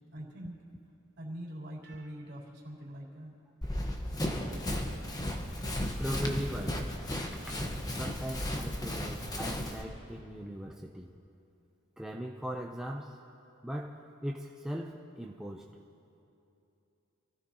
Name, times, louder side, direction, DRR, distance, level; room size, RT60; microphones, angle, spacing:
voice 1, 0.1-0.6 1.2-3.3, equal, 50° right, -5 dB, 3.6 m, -43 dB
Run, 3.6-9.8, left 1 dB, 15° left, 1.1 m, -35 dB
voice 2, 6.0-7.0 7.2-7.6 7.9-11.1 12.0-13.2 13.6-15.7, equal, 5° right, -1 dB, 0.5 m, -39 dB
28.0 x 16.0 x 2.9 m, 2.8 s
head